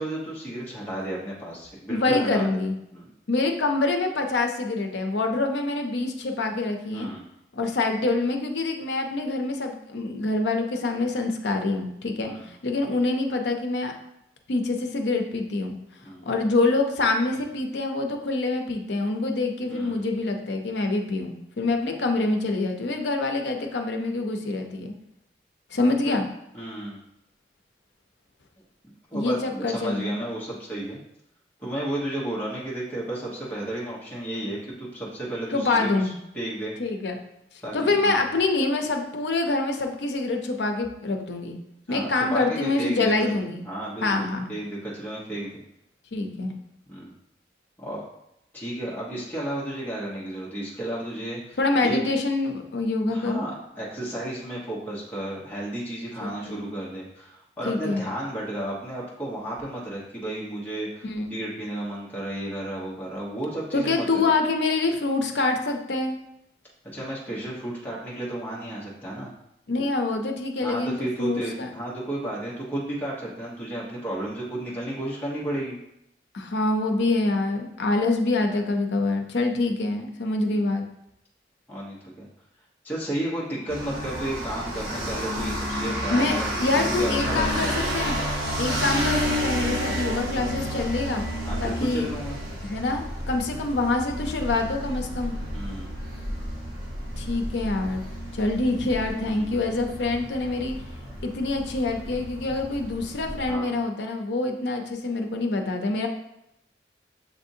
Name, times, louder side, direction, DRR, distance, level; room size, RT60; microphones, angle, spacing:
voice 1, 0.0-2.5 2.9-3.1 6.9-7.2 12.2-12.5 16.0-16.3 19.7-20.0 26.5-27.0 29.1-31.0 31.6-36.1 36.3-36.8 37.6-38.2 41.9-43.3 43.6-45.6 46.9-47.1 47.8-48.0 48.5-52.1 53.1-64.3 66.9-69.3 70.6-75.8 80.5-80.6 81.7-82.3 82.8-86.4 86.9-87.9 89.8-90.1 91.4-92.4 95.5-95.9 99.2-99.6 103.5-103.7, right 1 dB, 10° left, -7 dB, 1.0 m, -33 dB
voice 2, 1.9-2.8 3.3-7.1 7.5-13.9 14.5-15.8 16.3-24.9 25.7-26.3 29.1-30.2 35.5-36.1 36.8-37.2 37.7-41.6 41.9-43.7 44.0-44.5 46.1-46.5 51.6-53.4 56.2-56.7 57.6-58.0 61.0-61.3 63.7-66.2 69.7-71.7 76.3-80.8 86.1-88.3 88.6-91.2 91.6-92.1 92.6-95.3 97.2-98.0 98.3-100.7 101.2-106.1, left 2 dB, 85° left, 4 dB, 0.6 m, -26 dB
sound 1, 83.7-103.5, equal, 65° right, 1.2 m, -31 dB
7.1 x 2.6 x 2.7 m, 0.82 s
head